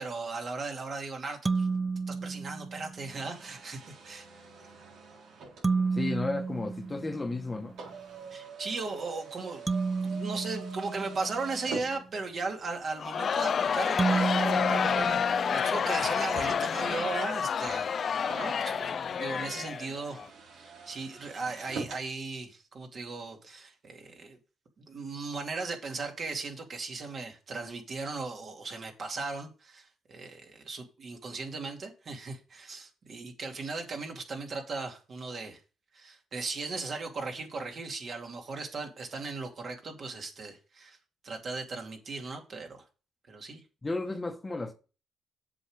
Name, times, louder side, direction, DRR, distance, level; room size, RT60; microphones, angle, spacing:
voice 1, 0.0-1.7 2.1-4.4 8.3-9.6 10.0-20.2 20.5-24.4 24.8-35.6 35.9-41.0 41.2-42.8 43.3-43.6, right 3 dB, 50° right, 2.5 m, -37 dB
sound 1, 1.4-3.1 5.6-7.7 9.7-11.8 14.0-16.0, right 4 dB, 20° right, 0.4 m, -32 dB
sound 2, 3.1-12.6 13.3-13.4 14.1-22.1, right 4 dB, 80° right, 3.7 m, -46 dB
voice 2, 5.9-7.7 43.8-44.7, left 3 dB, 20° left, 1.2 m, -33 dB
Crowd, 13.0-20.2, left 7 dB, 50° left, 0.4 m, -29 dB
7.6 x 6.4 x 5.0 m
cardioid pair, 90°, 0 cm